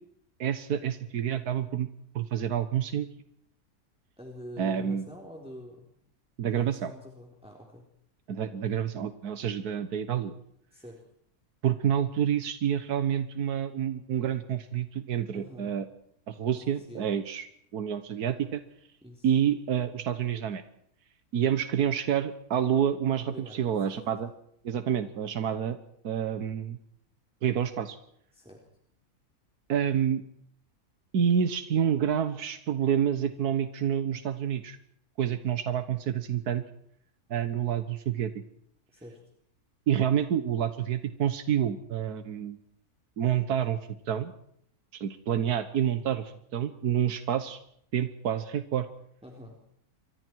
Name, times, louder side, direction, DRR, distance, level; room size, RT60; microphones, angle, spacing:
voice 1, 0.4-1.9 2.2-3.1 4.6-5.1 6.4-6.9 8.3-10.3 11.6-15.9 16.3-17.5 17.7-18.6 19.2-20.6 21.3-24.3 24.6-25.8 26.0-26.8 27.4-28.0 29.7-30.2 31.1-34.8 35.2-36.6 37.3-38.3 39.9-42.6 43.2-43.8 44.1-44.3 44.9-47.6 47.9-48.9, right 9 dB, 85° right, 10 dB, 1.7 m, -28 dB
voice 2, 4.2-6.0 6.5-7.9 10.7-11.0 15.3-15.7 16.4-17.1 19.0-19.3 23.3-24.0 28.3-28.6 38.9-39.2 49.2-49.6, equal, 5° right, -1 dB, 3.7 m, -46 dB
29.0 x 24.5 x 4.6 m, 0.69 s
omnidirectional pair, 1.6 m